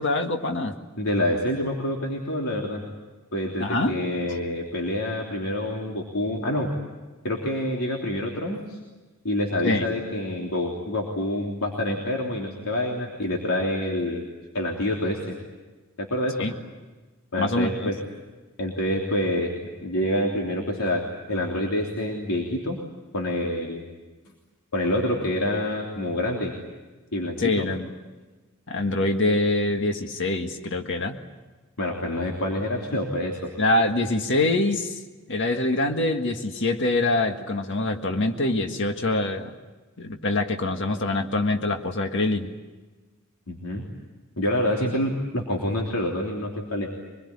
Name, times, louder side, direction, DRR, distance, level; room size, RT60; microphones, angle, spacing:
voice 1, 0.0-0.8 3.6-4.0 9.6-9.8 16.4-16.5 17.4-17.9 27.4-27.9 28.7-31.2 33.6-35.0 35.3-39.5 40.0-42.5, left 2 dB, 55° left, 5 dB, 1.8 m, -24 dB
voice 2, 1.0-2.8 3.3-6.7 7.2-8.8 9.2-14.2 14.5-15.3 16.0-16.5 17.3-17.9 18.6-21.0 21.3-22.8 23.1-23.8 24.7-26.5 27.1-27.6 31.8-33.5 43.5-43.8 44.4-46.9, left 1 dB, 85° left, -1 dB, 3.3 m, -27 dB
25.0 x 21.5 x 9.8 m, 1.3 s
head